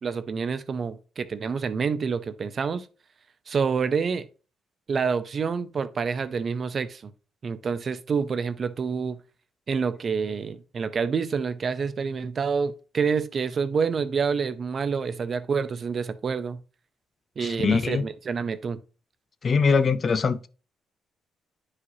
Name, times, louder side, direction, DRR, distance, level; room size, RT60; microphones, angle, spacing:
voice 1, 0.0-2.9 3.5-4.3 4.9-7.1 7.4-9.2 9.7-16.6 17.4-18.8, right 5 dB, 45° right, 0.6 m, -27 dB
voice 2, 17.4-18.0 19.4-20.5, left 5 dB, 45° left, 0.5 m, -22 dB
9.7 x 4.9 x 2.8 m
cardioid pair, 90°, 0 cm